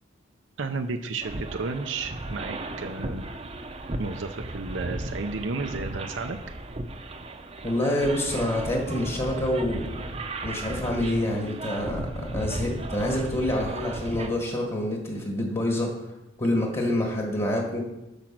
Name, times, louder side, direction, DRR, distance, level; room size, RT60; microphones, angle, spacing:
voice 1, 0.6-3.3 4.0-6.4, right 4 dB, 85° right, 5 dB, 0.6 m, -32 dB
sound 1, 1.2-14.3, right 2 dB, 35° right, 0.7 m, -35 dB
voice 2, 7.6-9.9 10.4-15.9 16.4-17.9, left 1 dB, 30° left, 0 dB, 1.5 m, -27 dB
8.9 x 6.2 x 6.0 m, 0.95 s
head